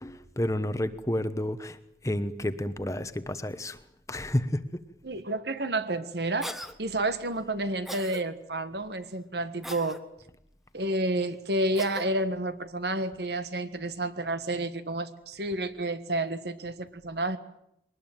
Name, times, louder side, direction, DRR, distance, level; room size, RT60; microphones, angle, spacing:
voice 1, 0.0-1.8 2.0-3.8 4.1-4.6, left 1 dB, 15° left, 11 dB, 1.0 m, -30 dB
voice 2, 5.0-6.5 6.8-10.0 10.7-17.4, right 1 dB, 70° right, 11 dB, 1.6 m, -30 dB
Cough, 6.4-6.7 7.9-8.2 9.6-10.0 11.8-12.1, equal, ahead, 1.2 m, -38 dB
22.5 x 19.5 x 9.1 m, 0.79 s
head